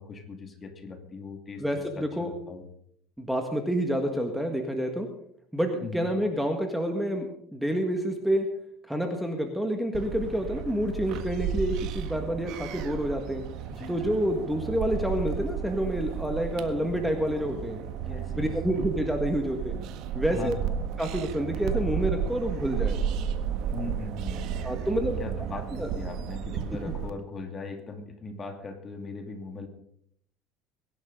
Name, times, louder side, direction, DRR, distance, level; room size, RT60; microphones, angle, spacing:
voice 1, 0.0-2.6 5.8-6.1 13.7-14.2 18.0-18.5 20.3-20.8 23.7-24.6 25.2-29.7, left 4 dB, 25° left, 5 dB, 2.5 m, -39 dB
voice 2, 1.6-2.3 3.2-5.1 5.5-8.5 8.9-13.4 13.9-17.8 18.3-19.8 20.1-20.5 21.0-23.0 24.6-25.2 25.8-25.9 26.9-27.0, equal, ahead, 4 dB, 1.8 m, -28 dB
sound 1, 9.9-27.1, right 8 dB, 60° right, 1.5 m, -33 dB
23.0 x 11.5 x 3.9 m, 0.67 s
cardioid pair, 130°, 0 cm